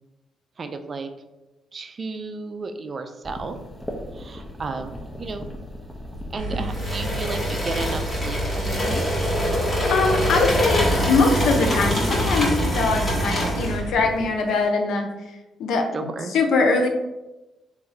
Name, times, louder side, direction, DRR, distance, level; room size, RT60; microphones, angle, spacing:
voice 1, 0.6-1.1 1.7-3.6 4.1-5.5 6.3-9.1 15.9-16.3, right 3 dB, 40° right, 7 dB, 0.4 m, -33 dB
sound 1, 3.2-14.3, equal, 10° left, 0.7 m, -38 dB
sound 2, 6.4-13.9, right 1 dB, 70° right, 0.8 m, -31 dB
sound 3, 6.7-13.8, equal, 30° left, 1.2 m, -24 dB
voice 2, 9.6-15.1 15.6-16.9, left 3 dB, 75° left, 3 dB, 0.6 m, -22 dB
3.3 x 2.6 x 3.8 m, 1.0 s
cardioid pair, 90°, 0 cm